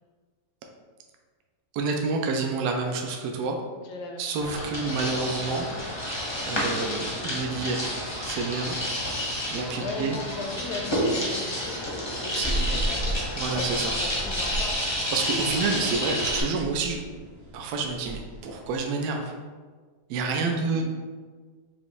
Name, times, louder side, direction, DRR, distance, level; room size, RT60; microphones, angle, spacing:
voice 1, 1.7-3.6 4.2-5.7 6.4-7.9 8.2-8.8 9.5-10.1 12.3-12.9 13.4-13.9 15.1-17.0 17.5-19.3 20.1-20.8, right 4 dB, 75° right, 2 dB, 1.0 m, -28 dB
voice 2, 3.7-4.5 9.8-13.7 14.0-14.7 20.5-20.8, left 4 dB, 75° left, 3 dB, 1.1 m, -38 dB
sound 1, 4.4-16.4, equal, 25° left, 0.5 m, -30 dB
sound 2, 12.4-18.8, right 1 dB, 55° right, 0.5 m, -35 dB
5.7 x 2.6 x 3.0 m, 1.4 s
omnidirectional pair, 1.8 m